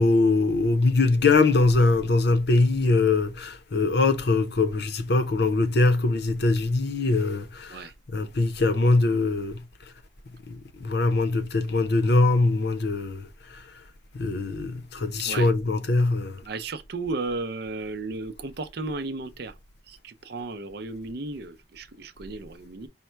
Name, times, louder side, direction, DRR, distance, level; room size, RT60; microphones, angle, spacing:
voice 1, 0.0-9.6 10.5-13.7 14.1-16.4, left 3 dB, 60° left, 0.7 m, -22 dB
voice 2, 16.4-19.5 19.9-22.9, right 3 dB, 60° right, 0.6 m, -34 dB
5.4 x 2.2 x 4.4 m
head